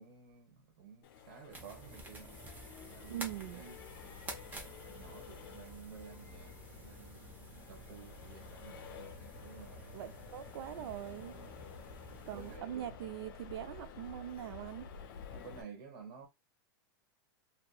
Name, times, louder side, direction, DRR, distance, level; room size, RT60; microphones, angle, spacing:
voice 1, 0.0-2.3 2.8-4.3 4.8-9.9 10.7-10.9 12.3-12.9 15.3-16.3, right 6 dB, 60° right, 1.2 m, -53 dB
Accelerating revving vroom, 1.0-15.6, left 7 dB, 65° left, 0.5 m, -51 dB
sound 1, 1.5-12.6, right 2 dB, 15° right, 0.6 m, -51 dB
voice 2, 3.1-3.8 9.9-11.4 12.3-14.9, right 12 dB, 80° right, 0.4 m, -42 dB
2.8 x 2.1 x 2.3 m
supercardioid pair, 150°, 12 cm